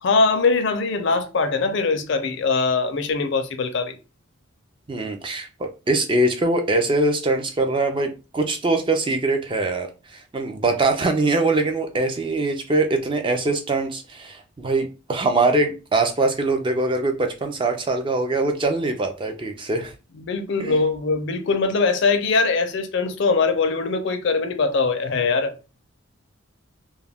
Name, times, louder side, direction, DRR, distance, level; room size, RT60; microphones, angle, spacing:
voice 1, 0.0-4.0 20.1-25.5, left 4 dB, 55° left, 0.4 m, -22 dB
voice 2, 4.9-19.9 20.6-20.8, right 2 dB, 25° right, 0.3 m, -23 dB
2.3 x 2.1 x 3.3 m
head